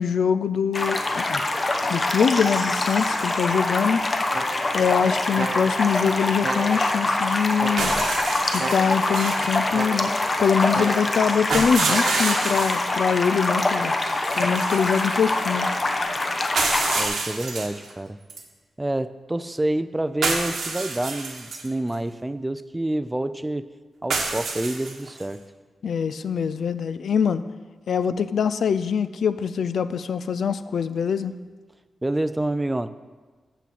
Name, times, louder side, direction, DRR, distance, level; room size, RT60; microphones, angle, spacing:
voice 1, 0.0-1.4 1.9-4.0 4.7-7.9 8.5-10.1 10.4-14.0 14.3-15.7 25.8-27.4 27.9-31.3, left 7 dB, 75° left, 13 dB, 0.3 m, -23 dB
sound 1, 0.7-17.1, left 2 dB, 35° left, 0.8 m, -25 dB
sound 2, 4.3-4.9 5.3-6.0 6.4-7.1 7.6-8.2 8.6-9.2 9.7-10.3 10.7-11.4 11.9-12.5, right 3 dB, 55° right, 0.9 m, -33 dB
sound 3, 7.8-9.6 11.5-12.9 14.2-15.4 16.6-17.9 18.3-18.4 20.2-21.7 24.1-25.2, right 4 dB, 80° right, 1.1 m, -28 dB
voice 2, 16.9-18.2 18.8-23.7 24.0-25.4 32.0-32.9, right 1 dB, 15° right, 13 dB, 0.3 m, -28 dB
5.9 x 5.8 x 6.9 m, 1.4 s
cardioid pair, 75°, 0 cm